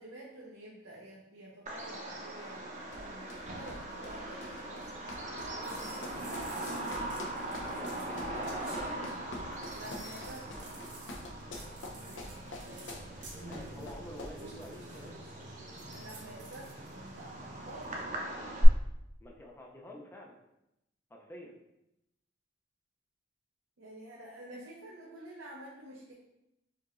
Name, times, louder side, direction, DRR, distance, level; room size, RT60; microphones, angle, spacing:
voice 1, 0.0-6.8 7.4-8.5 9.7-10.6 11.9-12.6 15.9-18.0 23.8-26.1, right 1 dB, 85° right, -5 dB, 0.7 m, -49 dB
Bird vocalization bird call bird song, 1.7-18.7, right 1 dB, 40° right, 0.7 m, -40 dB
sound 1, 2.9-14.5, left 1 dB, 80° left, 0.6 m, -46 dB
sound 2, 5.6-18.1, right 1 dB, 65° right, 1.3 m, -50 dB
voice 2, 7.8-8.9 13.5-15.2 19.2-20.4 21.1-21.6, left 1 dB, 10° left, 0 dB, 0.4 m, -48 dB
4.6 x 2.8 x 2.4 m, 0.87 s
head